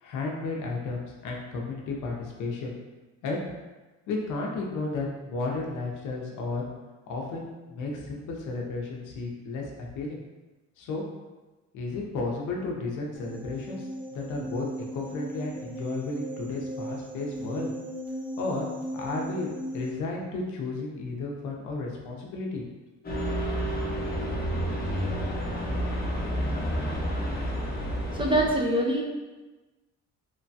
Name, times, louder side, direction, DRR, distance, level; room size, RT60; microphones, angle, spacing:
voice 1, 0.0-2.8 3.2-3.4 4.1-6.6 7.1-10.2 10.8-11.1 11.7-17.7 18.4-18.7 18.9-22.6 23.5-23.6, left 3 dB, 85° left, -1 dB, 0.6 m, -33 dB
sound 1, 13.1-19.9, equal, 50° right, 1.5 m, -37 dB
sound 2, 23.0-28.5, equal, 30° left, 0.7 m, -29 dB
voice 2, 28.1-29.0, right 1 dB, 15° right, -1 dB, 0.4 m, -24 dB
3.1 x 2.2 x 2.6 m, 1.2 s
cardioid pair, 90°, 30 cm